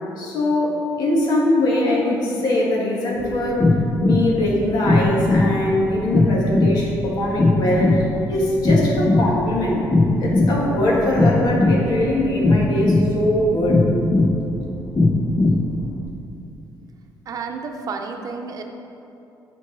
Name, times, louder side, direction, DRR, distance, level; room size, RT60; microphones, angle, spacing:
voice 1, 0.2-3.7 4.0-8.0 8.3-9.8 10.2-13.9, left 1 dB, 65° left, -4 dB, 1.9 m, -21 dB
sound 1, 3.2-16.1, left 2 dB, 20° left, 0.5 m, -19 dB
voice 2, 17.3-18.6, right 4 dB, 50° right, 4 dB, 0.7 m, -31 dB
10.0 x 4.6 x 4.7 m, 2.8 s
cardioid pair, 130°, 8 cm